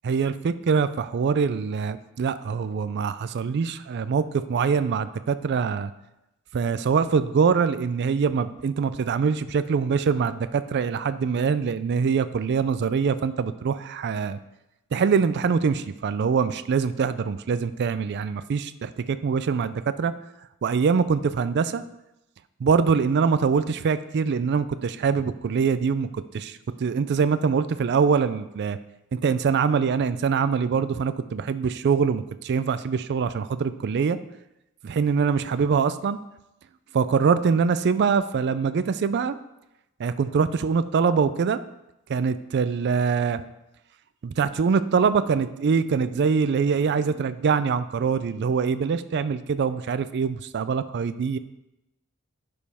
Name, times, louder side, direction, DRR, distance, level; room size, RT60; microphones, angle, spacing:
voice 1, 0.0-4.2 4.5-5.9 6.5-14.4 14.9-20.1 20.6-21.8 22.6-28.8 29.1-34.2 34.8-36.2 36.9-39.4 40.0-41.6 42.1-43.4 44.2-51.4, right 5 dB, 50° right, 13 dB, 0.3 m, -24 dB
11.0 x 5.1 x 3.5 m, 0.91 s
head